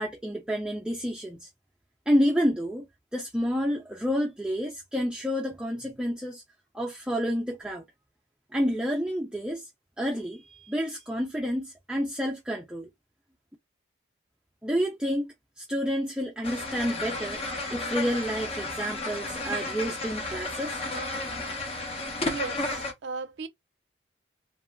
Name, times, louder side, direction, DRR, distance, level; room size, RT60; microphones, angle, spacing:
voice 1, 0.0-1.5 2.1-2.9 3.1-6.4 6.7-7.8 8.5-9.7 10.0-12.9 14.6-17.4 17.7-20.8, equal, 5° right, 0.4 m, -29 dB
sound 1, 16.4-22.9, left 2 dB, 30° left, 0.6 m, -33 dB
voice 2, 22.2-23.5, right 4 dB, 70° right, 0.5 m, -36 dB
2.9 x 2.4 x 2.2 m
head